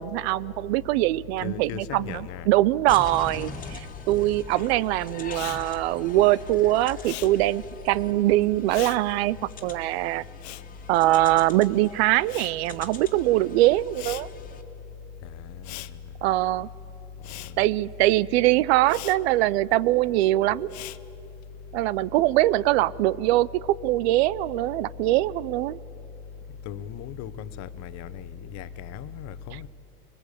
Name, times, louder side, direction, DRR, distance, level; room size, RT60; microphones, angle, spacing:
voice 1, 0.0-9.4 9.6-10.2 10.9-14.3 16.2-16.7 17.6-20.7 21.7-23.5 23.8-25.8, right 16 dB, 85° right, 0.5 m, -22 dB
voice 2, 1.4-2.5 3.1-3.6 15.2-16.0 17.5-17.6 26.6-29.7, left 9 dB, 60° left, 1.0 m, -38 dB
sound 1, 2.9-14.6, left 4 dB, 25° left, 2.1 m, -43 dB
Respiratory sounds, 5.3-11.7 12.0-21.5, left 17 dB, 85° left, 0.8 m, -43 dB
22.0 x 20.5 x 8.4 m
supercardioid pair, 110°, 31 cm